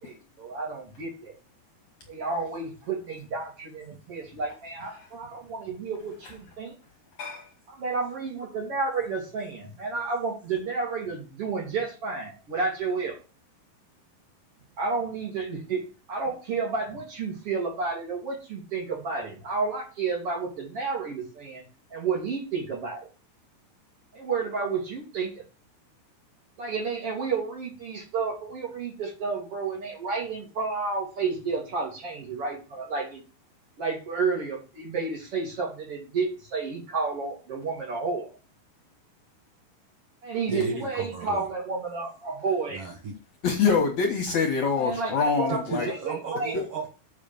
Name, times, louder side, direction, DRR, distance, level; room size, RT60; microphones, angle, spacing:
voice 1, 0.0-1.4 2.1-6.7 7.7-13.2 14.8-21.6 21.9-23.1 24.1-25.4 26.6-33.2 33.8-38.4 40.2-42.9 44.7-46.5, right 4 dB, 40° right, 3.3 m, -31 dB
voice 2, 7.2-7.5 43.4-45.9, left 5 dB, 60° left, 2.0 m, -25 dB
voice 3, 40.5-41.5 42.7-43.1 45.5-46.9, right 3 dB, 80° right, 1.3 m, -33 dB
7.2 x 6.7 x 6.9 m
omnidirectional pair, 4.8 m